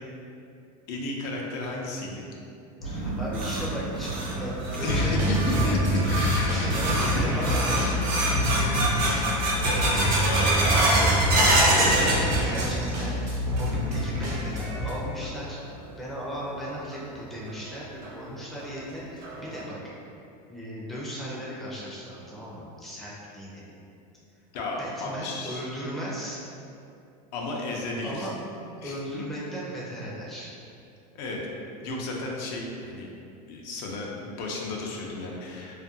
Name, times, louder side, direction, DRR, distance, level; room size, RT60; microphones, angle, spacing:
voice 1, 0.9-2.2 4.8-6.7 7.1-7.2 8.3-8.9 9.5-11.0 11.4-11.8 24.5-25.6 27.3-28.3 28.8-29.0 31.1-31.4 31.8-33.1 33.5-35.8, left 2 dB, 65° left, -1 dB, 0.5 m, -33 dB
sound 1, 2.8-14.6, right 2 dB, 85° left, 0.8 m, -38 dB
voice 2, 2.8-5.7 6.5-7.8 11.5-19.9 20.5-23.6 24.8-26.4 28.0-28.3 28.8-30.5, equal, ahead, -6 dB, 0.4 m, -36 dB
sound 2, 2.9-13.1 13.4-14.0 14.4-14.5 15.2-15.3 16.9-17.0 17.5-17.6 18.0-18.1 18.6-18.7 19.2-19.6, right 1 dB, 45° right, 0.6 m, -26 dB
sound 3, 4.8-14.9, left 1 dB, 80° right, 0.8 m, -27 dB
2.4 x 2.2 x 2.7 m, 2.6 s
supercardioid pair, 115°, 21 cm